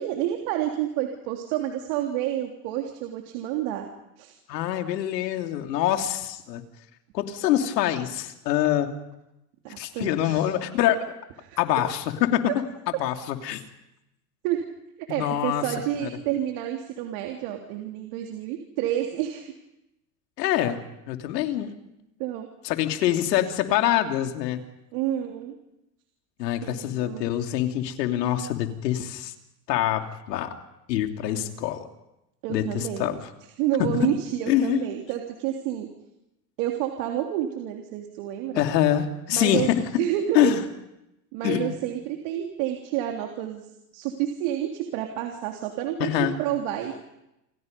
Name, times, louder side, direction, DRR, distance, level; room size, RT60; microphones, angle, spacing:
voice 1, 0.0-3.9 4.2-4.3 9.6-10.4 11.4-11.6 14.4-14.7 15.1-19.5 22.2-22.5 24.9-25.6 26.6-27.3 31.3-31.5 32.4-33.1 33.6-35.9 36.6-38.6 39.3-39.7 40.0-40.5 41.3-43.7 43.9-47.0, right 12 dB, 60° right, 3 dB, 3.6 m, -29 dB
voice 2, 4.5-6.6 7.1-8.9 9.8-11.0 11.6-12.4 12.9-13.6 15.1-15.6 16.0-16.1 20.4-21.7 22.6-24.6 26.4-29.3 29.7-30.5 30.9-31.9 32.5-33.3 33.8-33.9 34.5-34.8 38.5-39.8 40.3-40.6 41.4-41.7 46.0-46.3, left 12 dB, 80° left, 5 dB, 3.1 m, -25 dB
29.0 x 27.5 x 5.4 m, 0.88 s
supercardioid pair, 110°, 49 cm